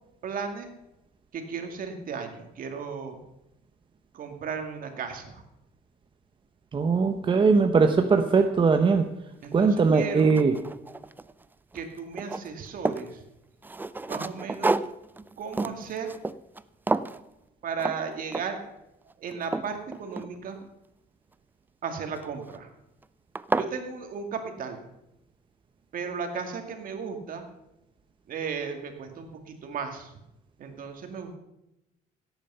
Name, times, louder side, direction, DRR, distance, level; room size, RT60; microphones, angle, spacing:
voice 1, 0.2-0.7 1.3-3.2 4.1-5.4 9.4-10.3 11.7-13.2 14.1-14.7 15.4-16.1 17.6-18.6 19.2-20.6 21.8-22.7 23.6-24.8 25.9-27.4 28.3-30.1 30.6-31.4, right 5 dB, 55° right, 5 dB, 2.3 m, -35 dB
voice 2, 6.7-9.1 9.5-10.6, right 4 dB, 30° right, 7 dB, 0.9 m, -20 dB
sound 1, 9.4-9.5 10.0-11.4 11.7-13.1 13.6-16.6 16.9-17.2 17.8-18.0 18.3-18.7 19.1-20.7 22.2-22.6 23.0-23.1 23.3-23.7, right 3 dB, 10° right, 0.4 m, -31 dB
16.5 x 9.0 x 5.6 m, 0.91 s
cardioid pair, 110°, 17 cm